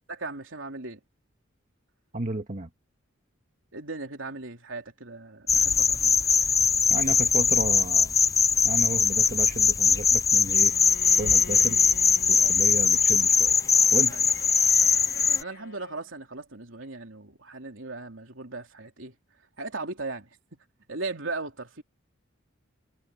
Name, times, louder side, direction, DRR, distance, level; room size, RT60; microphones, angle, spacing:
voice 1, 0.1-1.0 3.7-6.2 12.4-12.6 14.1-14.2 15.4-19.1 19.6-21.8, right 3 dB, 70° right, 3.7 m, -38 dB
voice 2, 2.1-2.7 6.9-8.1 8.6-10.7 11.2-11.8 12.3-13.5 13.9-14.2, right 2 dB, 40° right, 1.6 m, -33 dB
sound 1, 5.5-15.4, left 6 dB, 15° left, 0.5 m, -21 dB
Bowed string instrument, 10.5-16.1, left 4 dB, 50° left, 2.3 m, -46 dB
head